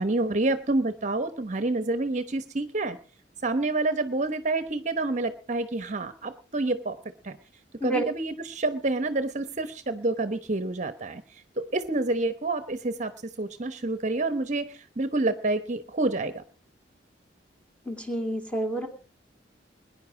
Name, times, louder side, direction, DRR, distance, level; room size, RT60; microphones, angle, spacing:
voice 1, 0.0-3.0 3.4-7.0 7.2-7.4 7.8-11.2 11.6-13.1 13.4-16.4, right 2 dB, 45° right, 10 dB, 1.0 m, -28 dB
voice 2, 17.9-18.9, right 1 dB, 5° left, 2 dB, 2.5 m, -29 dB
21.5 x 10.5 x 4.9 m, 0.37 s
head